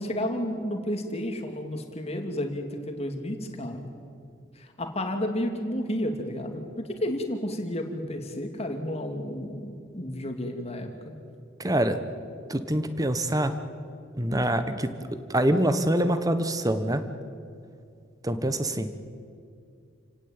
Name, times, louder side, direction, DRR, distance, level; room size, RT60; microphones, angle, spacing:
voice 1, 0.0-3.9 4.5-11.1, left 1 dB, 30° left, 4 dB, 2.6 m, -32 dB
voice 2, 11.6-12.0 12.5-13.5 14.2-17.0 18.2-18.9, right 1 dB, 20° right, 10 dB, 1.3 m, -25 dB
29.0 x 17.5 x 8.9 m, 2.4 s
head